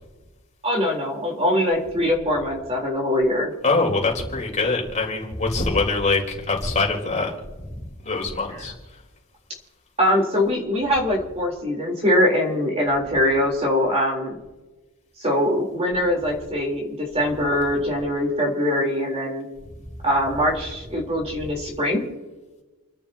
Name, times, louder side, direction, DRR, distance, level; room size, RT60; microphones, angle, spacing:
voice 1, 0.6-3.5 10.0-14.4 15.2-19.5 20.0-22.0, left 1 dB, 30° right, -1 dB, 3.8 m, -22 dB
voice 2, 3.6-8.7, left 3 dB, 35° left, -2 dB, 4.1 m, -24 dB
29.5 x 12.0 x 2.9 m, 1.1 s
head